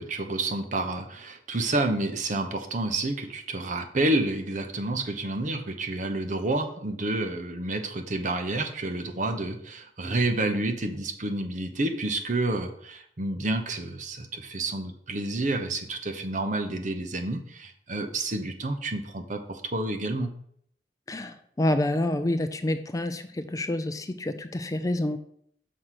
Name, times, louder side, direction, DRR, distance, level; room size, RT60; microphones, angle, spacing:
voice 1, 0.0-20.3, right 2 dB, 45° right, 5 dB, 0.9 m, -29 dB
voice 2, 21.1-25.2, left 1 dB, 20° left, 9 dB, 0.4 m, -28 dB
6.5 x 4.7 x 5.7 m, 0.66 s
head